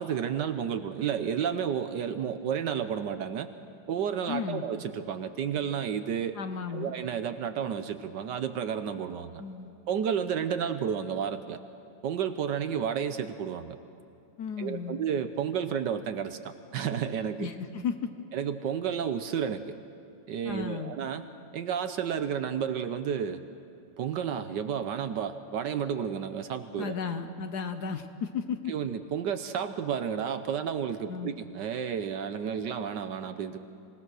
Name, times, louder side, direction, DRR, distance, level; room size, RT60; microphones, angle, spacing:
voice 1, 0.0-3.5 3.9-6.3 6.7-9.4 9.9-11.6 12.0-13.8 14.6-17.5 18.3-19.7 20.3-21.2 21.5-23.4 24.0-26.9 28.7-33.6, right 8 dB, 65° right, 10 dB, 1.3 m, -31 dB
voice 2, 4.3-4.6 6.3-6.9 9.4-9.7 14.4-15.0 17.4-18.1 20.4-20.9 26.8-28.7 31.1-31.3, left 6 dB, 60° left, 8 dB, 1.3 m, -34 dB
26.0 x 18.0 x 6.3 m, 2.7 s
omnidirectional pair, 2.2 m